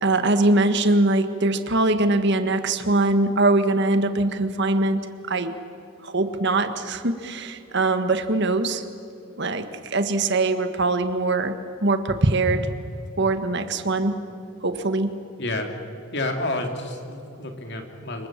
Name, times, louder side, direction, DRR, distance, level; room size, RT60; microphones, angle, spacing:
voice 1, 0.0-5.0 5.3-5.5 6.0-8.8 9.4-11.6 11.8-12.7 13.2-14.2 14.6-15.1, right 2 dB, 55° right, 9 dB, 1.6 m, -22 dB
voice 2, 15.4-15.7 16.1-18.3, left 2 dB, 55° left, 4 dB, 2.9 m, -29 dB
26.0 x 23.5 x 7.6 m, 2.6 s
head